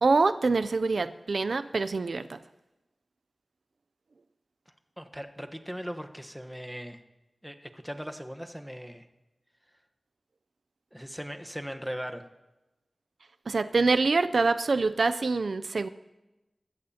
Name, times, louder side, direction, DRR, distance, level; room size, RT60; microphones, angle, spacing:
voice 1, 0.0-2.4 13.5-15.9, right 3 dB, 80° right, 11 dB, 0.4 m, -25 dB
voice 2, 5.0-7.0 7.4-9.1 10.9-12.2, equal, 5° right, 6 dB, 1.1 m, -39 dB
23.5 x 14.0 x 2.8 m, 1.0 s
wide cardioid pair, 50°, 0 cm